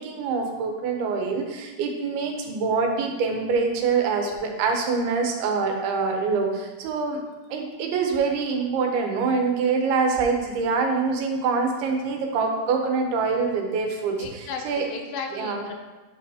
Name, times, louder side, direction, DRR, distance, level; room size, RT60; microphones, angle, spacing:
voice 1, 0.0-7.2 7.5-14.9 15.3-15.6, right 4 dB, 90° right, 3 dB, 2.8 m, -25 dB
voice 2, 14.2-15.7, left 5 dB, 80° left, 3 dB, 2.3 m, -35 dB
8.6 x 5.5 x 2.8 m, 1.2 s
omnidirectional pair, 4.4 m